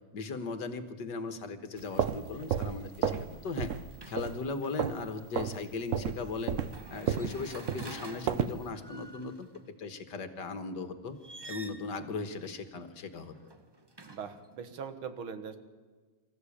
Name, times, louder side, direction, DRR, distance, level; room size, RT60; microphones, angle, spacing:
voice 1, 0.1-3.7 4.1-6.6 6.9-9.5 9.8-11.2 11.5-13.4, left 4 dB, 60° left, 9 dB, 1.9 m, -38 dB
sound 1, 1.8-3.3 3.6-3.9 4.2-5.1 5.3-5.6 5.9-8.6, right 8 dB, 65° right, 0.8 m, -32 dB
sound 2, 1.9-2.2 2.6-4.7 6.5-9.6 11.1-12.0 13.2-14.5, right 2 dB, 25° right, 0.5 m, -48 dB
voice 2, 14.1-15.6, right 6 dB, 90° right, 9 dB, 2.2 m, -41 dB
25.0 x 14.0 x 8.6 m, 1.4 s
omnidirectional pair, 2.2 m